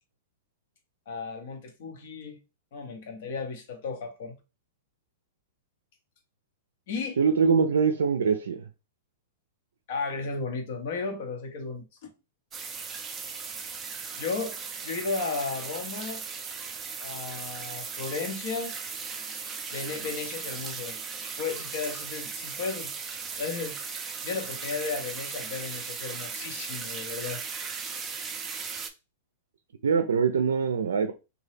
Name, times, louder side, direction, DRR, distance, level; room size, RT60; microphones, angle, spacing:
voice 1, 1.1-2.4 2.7-4.4 6.9-7.2 9.9-12.1 14.2-14.6 14.8-16.2 17.0-18.7 19.7-21.0 21.4-22.9 23.4-23.8 24.2-27.4, left 4 dB, 65° left, 1.0 m, -34 dB
voice 2, 7.2-8.6 29.8-31.1, right 6 dB, 85° right, 0.4 m, -23 dB
sound 1, 12.5-28.9, right 5 dB, 20° right, 0.5 m, -37 dB
2.8 x 2.3 x 3.3 m
hypercardioid pair, 120°, 0 cm